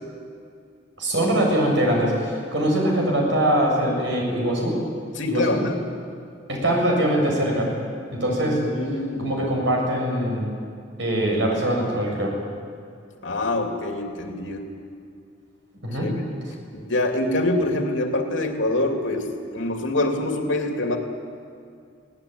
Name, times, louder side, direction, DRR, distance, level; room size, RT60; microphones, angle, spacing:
voice 1, 1.0-4.8 5.3-5.4 6.5-7.7 8.1-8.6 9.2-10.5 11.0-12.3 15.8-16.1, right 1 dB, 75° right, -1 dB, 7.7 m, -22 dB
voice 2, 5.2-5.8 8.3-9.4 13.2-14.6 16.0-16.3 16.7-19.3 19.5-21.0, left 2 dB, 80° left, 3 dB, 2.9 m, -25 dB
23.0 x 18.5 x 9.7 m, 2.4 s
head